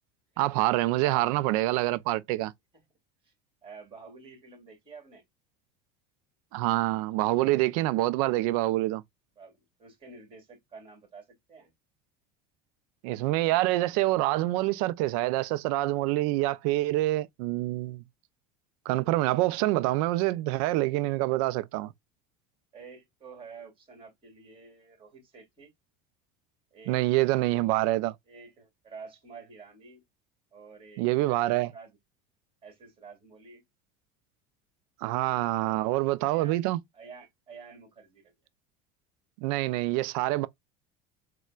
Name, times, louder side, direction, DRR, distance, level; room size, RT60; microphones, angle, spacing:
voice 1, 0.4-2.5 6.5-9.0 13.0-18.0 18.9-21.9 26.9-28.1 31.0-31.7 35.0-36.8 39.4-40.5, right 17 dB, 70° right, 0.4 m, -26 dB
voice 2, 3.6-5.2 9.4-11.7 22.7-25.7 26.7-27.9 28.3-30.0 30.5-32.0 32.6-33.6 35.5-38.3, right 5 dB, 30° right, 2.0 m, -50 dB
4.2 x 2.2 x 2.3 m
supercardioid pair, 105°, 19 cm